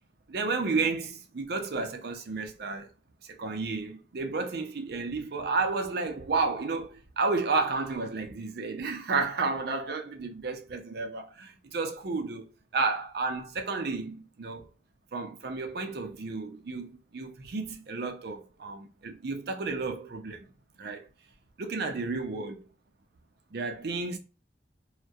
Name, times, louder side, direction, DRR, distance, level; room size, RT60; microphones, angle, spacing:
voice 1, 0.3-2.9 3.2-14.7 15.1-20.5 20.8-21.1 21.6-22.6 23.5-24.2, right 4 dB, 60° right, 0.5 m, -32 dB
2.3 x 2.1 x 2.6 m
head